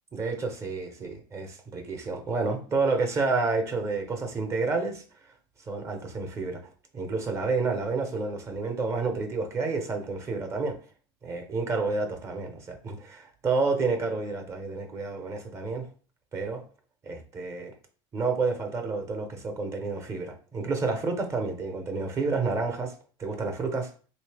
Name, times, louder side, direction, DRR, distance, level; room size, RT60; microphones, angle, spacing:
voice 1, 0.1-5.3 5.7-6.6 6.9-10.8 11.2-15.9 16.3-16.6 17.0-17.7 18.1-22.9 23.2-23.9, right 3 dB, 30° right, 5 dB, 0.8 m, -29 dB
3.5 x 2.7 x 3.3 m, 0.40 s
supercardioid pair, 125°, 10 cm